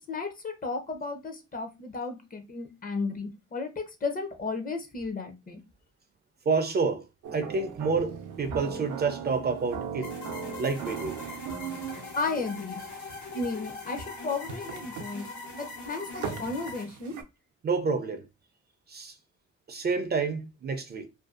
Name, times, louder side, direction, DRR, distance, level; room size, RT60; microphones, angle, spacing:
voice 1, 0.1-5.6 12.1-12.8 13.3-17.2, left 3 dB, 30° left, 0.6 m, -34 dB
voice 2, 6.5-7.0 7.3-10.1 10.6-11.2 17.6-18.2 18.9-19.1 19.7-21.1, right 4 dB, 35° right, 0.4 m, -28 dB
sound 1, 7.2-17.2, right 7 dB, 90° right, 0.5 m, -39 dB
sound 2, 10.0-16.8, left 3 dB, 70° left, 0.9 m, -41 dB
2.6 x 2.3 x 2.3 m
cardioid pair, 90°, 30 cm